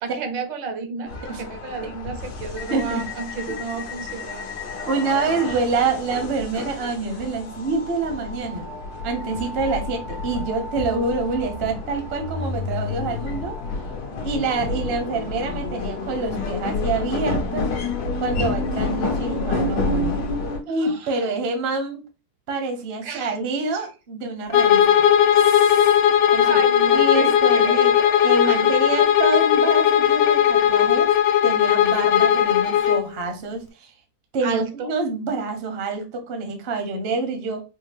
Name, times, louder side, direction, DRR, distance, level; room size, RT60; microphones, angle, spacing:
voice 1, 0.0-4.5 5.5-5.6 20.8-21.3 23.0-23.4 26.4-28.7 34.4-34.9, right 5 dB, 80° right, 1.5 m, -32 dB
sound 1, 1.1-20.6, left 3 dB, 60° left, 1.2 m, -29 dB
voice 2, 2.7-3.0 3.5-3.6 4.9-8.7 9.0-13.6 14.2-17.7 18.2-20.2 20.6-22.0 22.5-25.9 26.3-26.6 26.9-27.9 28.2-31.1 31.4-33.9 34.3-37.6, right 3 dB, 50° right, 0.8 m, -26 dB
Bowed string instrument, 24.5-33.1, left 9 dB, 90° left, 1.4 m, -17 dB
4.8 x 2.3 x 3.4 m
omnidirectional pair, 2.1 m